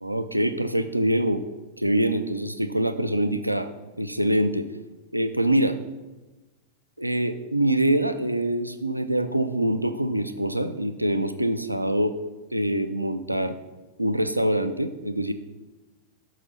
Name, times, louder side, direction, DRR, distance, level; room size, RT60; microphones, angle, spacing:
voice 1, 0.0-1.4 1.8-3.7 4.0-4.7 5.1-5.8 7.0-12.2 12.5-13.5 14.0-15.3, right 1 dB, 85° right, 10 dB, 0.5 m, -24 dB
6.3 x 5.8 x 5.4 m, 1.1 s
figure-of-eight pair, 90°, 0 cm